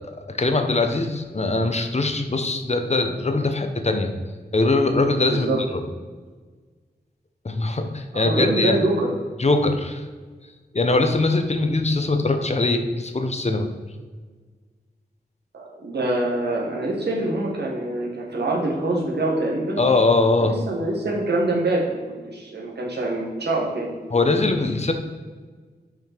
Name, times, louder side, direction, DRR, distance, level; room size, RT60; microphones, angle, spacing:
voice 1, 0.3-4.1 4.5-5.5 7.4-8.8 9.4-10.0 10.7-13.7 19.8-20.6 24.1-24.9, left 2 dB, 40° left, 6 dB, 0.8 m, -21 dB
voice 2, 5.3-5.6 8.1-9.1 15.5-19.8 20.4-22.0 22.3-23.9, right 2 dB, 85° right, -2 dB, 1.6 m, -25 dB
6.0 x 5.1 x 4.5 m, 1.4 s
wide cardioid pair, 65°, 17 cm